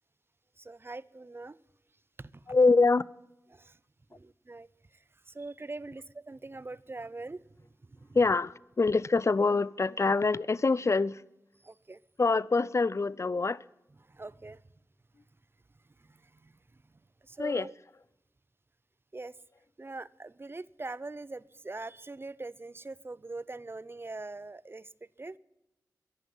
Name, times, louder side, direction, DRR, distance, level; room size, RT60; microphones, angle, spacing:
voice 1, 0.6-1.6 2.2-2.6 3.5-3.8 4.1-4.7 5.3-7.4 7.9-8.2 11.6-12.0 14.1-14.6 16.1-16.5 17.3-17.7 19.1-19.3 19.8-24.9 25.2-25.4, right 2 dB, 30° right, 0.6 m, -42 dB
voice 2, 2.5-3.1 8.1-11.2 12.2-13.6 17.4-17.7, left 3 dB, 40° left, 0.5 m, -25 dB
21.5 x 11.0 x 5.4 m
cardioid pair, 40°, 7 cm